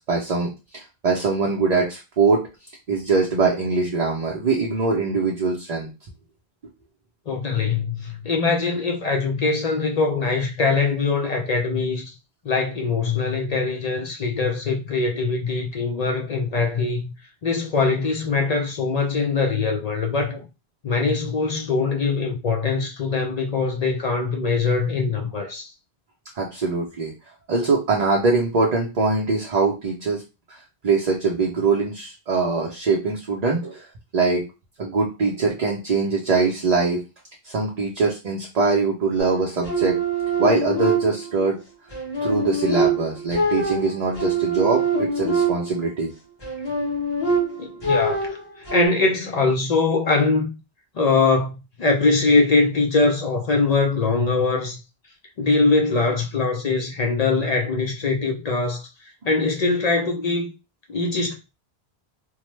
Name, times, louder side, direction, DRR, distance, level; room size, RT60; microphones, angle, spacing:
voice 1, 0.1-2.4 2.9-5.9 26.4-27.1 27.5-30.2 30.5-30.6 30.8-33.9 34.1-34.4 34.8-37.0 37.4-40.0 40.4-41.6 42.2-46.1, right 4 dB, 45° right, 0.6 m, -22 dB
voice 2, 7.3-12.1 12.4-17.1 17.4-20.5 20.8-25.7 47.6-48.4 48.7-50.5 51.0-54.8 55.4-58.8 59.3-60.5 60.9-61.3, left 3 dB, 50° left, 0.5 m, -22 dB
sound 1, 39.2-41.5 41.9-45.9 46.4-48.9, right 3 dB, 25° left, 1.1 m, -24 dB
3.0 x 2.1 x 3.2 m
omnidirectional pair, 1.1 m